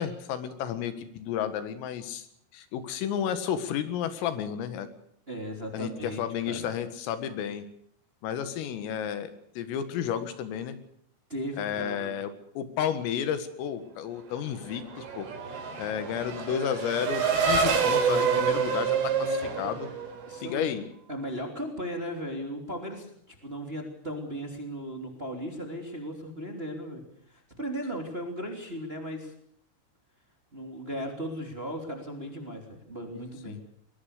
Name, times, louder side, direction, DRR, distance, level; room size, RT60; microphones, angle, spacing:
voice 1, 0.0-2.3 2.5-4.9 5.7-7.7 8.2-9.3 9.6-10.8 11.6-15.3 15.8-19.9 20.4-20.8 33.5-33.6, left 9 dB, 90° left, 10 dB, 4.5 m, -32 dB
voice 2, 5.3-6.7 11.3-12.2 16.0-16.1 19.6-19.7 20.3-20.7 21.1-27.0 27.3-29.3 30.5-33.6, equal, 15° right, 3 dB, 2.4 m, -37 dB
Race car auto racing / Accelerating revving vroom, 14.5-20.5, right 6 dB, 70° right, 6.6 m, -27 dB
22.5 x 21.5 x 6.7 m, 0.67 s
omnidirectional pair, 5.8 m